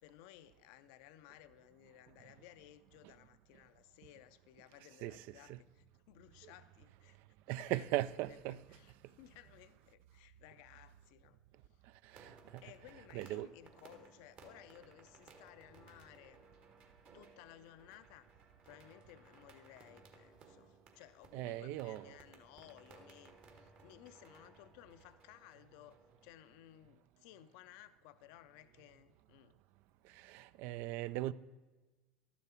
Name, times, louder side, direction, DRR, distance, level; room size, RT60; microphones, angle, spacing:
voice 1, 0.0-7.2 7.5-7.9 8.3-11.4 12.6-16.4 17.1-18.3 18.6-29.6, left 13 dB, 70° left, 0.5 m, -59 dB
voice 2, 5.0-5.6 7.5-8.6 12.1-12.6 13.1-13.5 21.3-22.1 30.2-31.3, right 15 dB, 65° right, 0.3 m, -39 dB
sound 1, 12.1-26.3, right 4 dB, 50° right, 1.5 m, -61 dB
12.0 x 7.0 x 4.4 m
hypercardioid pair, 90°, 4 cm